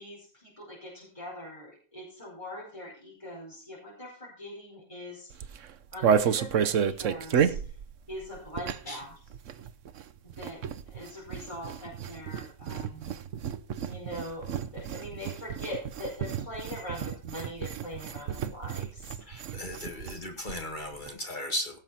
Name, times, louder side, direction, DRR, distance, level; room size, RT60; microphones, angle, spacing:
voice 1, 0.0-5.6 5.9-7.5 8.1-9.1 10.2-10.6 10.9-13.2 13.9-19.2 19.9-20.1, equal, 25° left, -5 dB, 5.0 m, -42 dB
sound 1, 5.3-9.0 9.3-20.2 20.5-20.6 20.8-21.1, right 7 dB, 85° right, 1.2 m, -31 dB
voice 2, 19.2-21.8, left 1 dB, 40° left, 3 dB, 2.0 m, -36 dB
17.5 x 7.5 x 4.3 m, 0.42 s
omnidirectional pair, 1.3 m